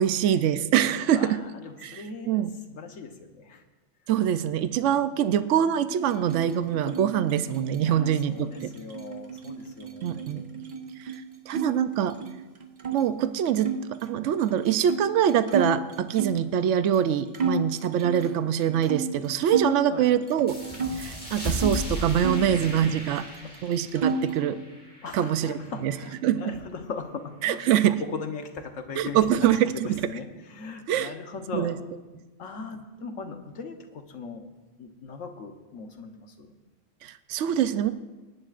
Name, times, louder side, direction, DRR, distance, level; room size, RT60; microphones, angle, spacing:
voice 1, 0.0-1.4 1.8-2.5 4.1-8.7 10.0-10.4 11.0-11.1 11.5-12.2 12.9-20.5 21.0-23.3 23.6-24.6 25.1-25.9 26.2-26.4 27.4-28.0 29.0-30.1 30.9-31.1 31.5-31.7 37.0-37.9, right 10 dB, 80° right, 12 dB, 0.9 m, -24 dB
voice 2, 1.1-3.6 7.8-10.6 19.9-20.1 23.0-23.5 25.0-27.6 28.0-31.8 32.4-34.5 34.8-36.6, left 4 dB, 85° left, 5 dB, 1.4 m, -39 dB
sound 1, 6.0-11.7 12.0-13.0 13.6-16.5 16.9-17.1 17.3-19.8 20.1-21.8 22.2-23.3 23.5-24.4, right 4 dB, 40° right, 0.9 m, -33 dB
sound 2, 20.5-25.7, equal, 5° left, 3.3 m, -36 dB
26.5 x 11.0 x 2.5 m, 1.2 s
omnidirectional pair, 1.3 m